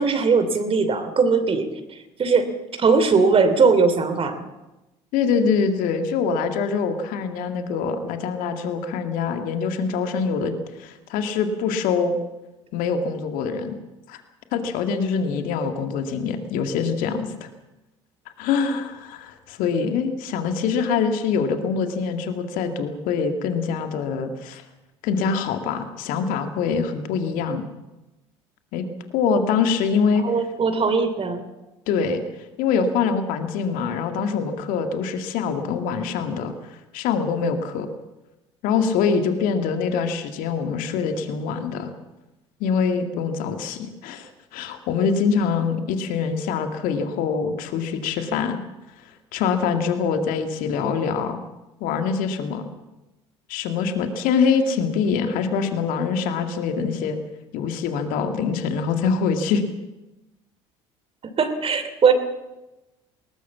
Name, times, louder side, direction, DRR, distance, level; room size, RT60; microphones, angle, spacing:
voice 1, 0.0-2.5 2.8-4.4 30.2-31.4 61.4-62.1, right 5 dB, 40° right, 9 dB, 3.0 m, -20 dB
voice 2, 5.1-10.5 10.8-12.2 12.7-13.8 14.1-14.2 14.5-17.5 18.4-24.6 25.0-27.6 28.7-28.8 29.1-30.3 31.9-32.2 32.6-37.9 38.6-41.9 42.6-48.6 49.3-51.4 51.8-52.7 53.5-57.2 57.5-59.6, left 5 dB, 65° left, 6 dB, 2.1 m, -24 dB
21.0 x 19.0 x 7.3 m, 1.0 s
hypercardioid pair, 60°, 15 cm